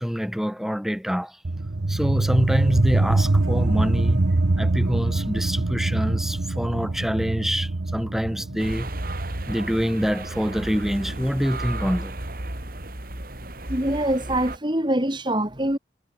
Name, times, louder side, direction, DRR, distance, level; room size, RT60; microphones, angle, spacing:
voice 1, 0.0-1.4 1.9-4.3 4.6-8.9 9.5-12.2, equal, ahead, 5.5 m, -26 dB
sound 1, 1.4-12.5, right 2 dB, 75° right, 0.9 m, -25 dB
sound 2, 8.6-14.6, right 1 dB, 50° right, 3.6 m, -34 dB
voice 2, 13.7-15.8, right 1 dB, 25° right, 3.0 m, -24 dB
head